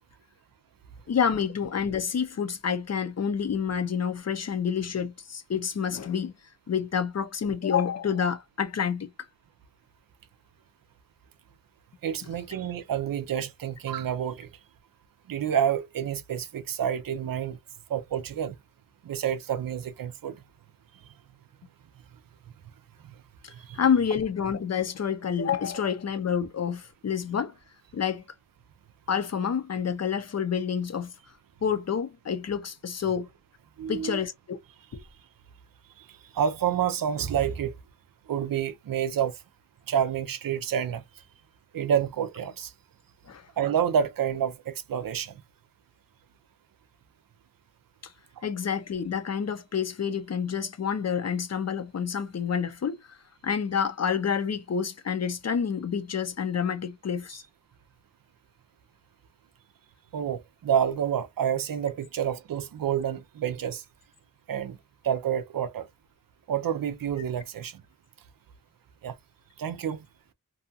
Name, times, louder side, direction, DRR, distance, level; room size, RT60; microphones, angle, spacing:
voice 1, 1.1-6.3 6.7-9.1 23.4-27.5 27.9-28.2 29.1-31.1 31.6-33.3 33.9-34.6 34.9-35.0 43.3-43.4 48.0-48.1 48.4-53.0 53.4-57.4, left 7 dB, 50° left, 0.5 m, -28 dB
voice 2, 12.0-14.5 15.3-17.6 17.9-18.6 19.0-20.4 23.0-23.2 23.5-23.8 33.8-34.2 36.0-37.7 38.3-39.4 39.9-41.0 41.7-42.7 43.6-45.4 48.4-48.5 60.1-63.8 64.5-64.8 65.0-65.9 66.5-67.8 69.0-69.1 69.6-70.1, right 8 dB, 85° right, 0.5 m, -28 dB
2.6 x 2.3 x 2.6 m
wide cardioid pair, 90°, 33 cm